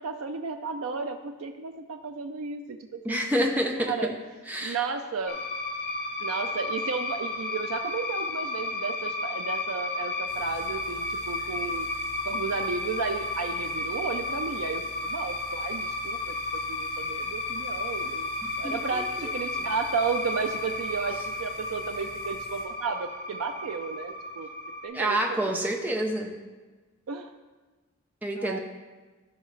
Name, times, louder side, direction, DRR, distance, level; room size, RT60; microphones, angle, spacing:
voice 1, 0.0-3.5 3.8-4.1 4.6-5.4 6.2-11.9 12.3-16.4 16.7-18.3 18.6-24.5 24.8-25.8 27.1-27.3 28.4-28.6, right 5 dB, 90° right, 6 dB, 0.4 m, -33 dB
voice 2, 3.0-3.9 4.5-4.8 18.6-19.3 24.9-26.3 28.2-28.6, right 1 dB, 10° right, 2 dB, 0.7 m, -28 dB
sound 1, 5.3-24.9, left 2 dB, 45° left, 1.0 m, -33 dB
sound 2, 10.3-22.6, left 2 dB, 25° left, 2.8 m, -50 dB
13.0 x 5.5 x 3.2 m, 1.3 s
head